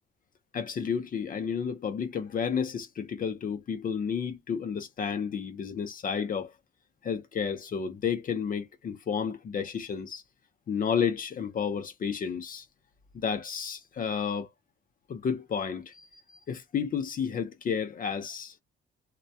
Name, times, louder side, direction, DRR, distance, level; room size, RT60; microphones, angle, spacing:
voice 1, 0.5-6.5 7.0-10.2 10.7-12.7 13.1-14.5 15.1-18.5, left 7 dB, 45° left, 0.5 m, -31 dB
2.1 x 2.1 x 2.7 m
cardioid pair, 90°, 20 cm